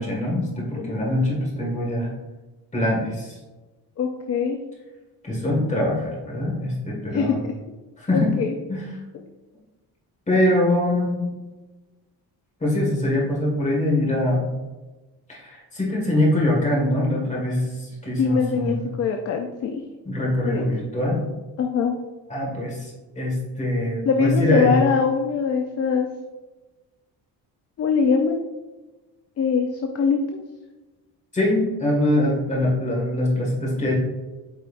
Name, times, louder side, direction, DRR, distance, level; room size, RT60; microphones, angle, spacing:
voice 1, 0.0-2.1 2.7-3.4 5.2-7.4 8.0-8.4 8.7-9.0 10.3-11.2 12.6-14.5 15.3-18.9 20.1-21.2 22.3-24.8 31.3-33.9, left 1 dB, 20° left, -3 dB, 1.8 m, -23 dB
voice 2, 4.0-4.6 7.1-7.5 8.1-8.5 18.2-19.8 20.4-20.6 21.6-22.0 24.1-26.1 27.8-28.4 29.4-29.7 29.9-30.2, left 5 dB, 40° left, 4 dB, 0.5 m, -22 dB
8.5 x 4.7 x 2.5 m, 1.2 s
cardioid pair, 170°, 38 cm